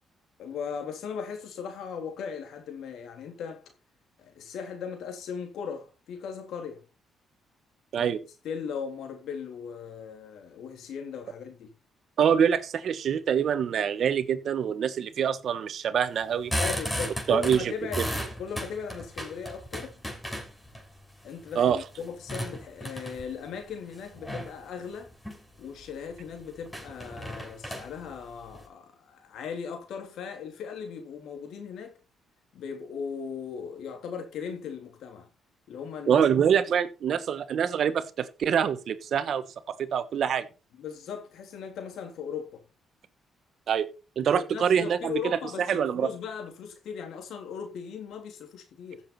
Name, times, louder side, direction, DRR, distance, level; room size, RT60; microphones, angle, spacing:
voice 1, 0.4-3.7 4.2-6.8 7.9-8.1 8.4-11.7 16.6-19.9 21.2-25.1 25.6-31.9 32.5-35.3 35.7-36.2 40.7-42.6 44.2-49.0, left 6 dB, 75° left, 3.4 m, -38 dB
voice 2, 12.2-16.5 17.3-18.0 21.5-21.8 36.1-40.5 43.7-43.9 44.2-45.2 45.7-46.1, right 8 dB, 60° right, 1.2 m, -25 dB
sound 1, 16.2-20.8 21.3-23.4 24.1-24.6 25.1-25.4 25.8-25.9 26.2-26.3 26.7-28.7, equal, 10° left, 6.6 m, -34 dB
15.5 x 7.3 x 4.3 m
cardioid pair, 90°, 0 cm